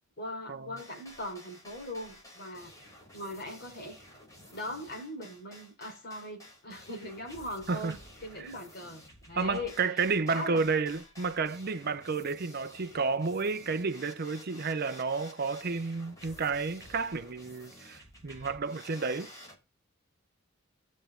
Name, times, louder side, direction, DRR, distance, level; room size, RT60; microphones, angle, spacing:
voice 1, 0.2-2.8 3.1-4.0 4.5-9.8 10.3-10.6, left 1 dB, 55° left, 4.7 m, -40 dB
sound 1, 0.8-19.6, left 1 dB, 15° left, 6.7 m, -52 dB
voice 2, 9.4-19.3, right 4 dB, 50° right, 0.6 m, -31 dB
15.0 x 8.3 x 3.7 m
head